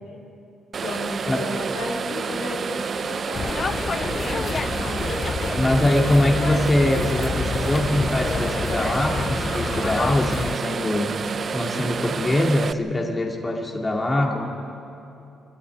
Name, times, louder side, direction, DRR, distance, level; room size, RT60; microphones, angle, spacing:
sound 1, 0.7-12.7, right 6 dB, 45° right, 0.5 m, -29 dB
voice 1, 0.8-5.1 13.9-14.5, left 2 dB, 80° left, -1 dB, 3.5 m, -34 dB
sound 2, 3.3-10.6, left 5 dB, 40° left, 0.4 m, -28 dB
voice 2, 5.5-11.2 11.5-14.5, left 1 dB, 20° left, 0 dB, 2.4 m, -23 dB
23.5 x 13.0 x 9.4 m, 2.7 s
cardioid pair, 90°, 0 cm